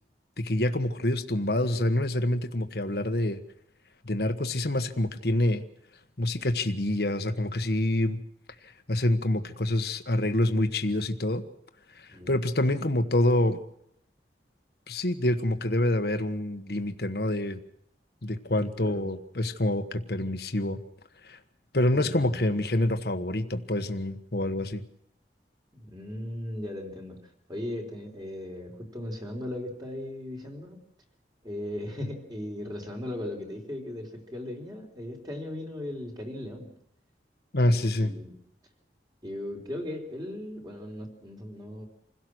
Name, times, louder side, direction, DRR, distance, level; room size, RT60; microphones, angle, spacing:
voice 1, 0.4-3.4 4.0-5.6 6.2-8.2 8.6-11.4 11.9-13.6 14.9-17.6 18.2-20.8 21.2-21.4 21.7-24.8 37.5-38.1, left 1 dB, 60° left, 8 dB, 1.4 m, -27 dB
voice 2, 21.9-22.4 25.7-27.2 27.5-30.8 31.4-36.7 37.6-38.3 39.2-41.9, left 1 dB, 25° right, 2 dB, 4.1 m, -37 dB
27.0 x 16.5 x 6.3 m, 0.75 s
head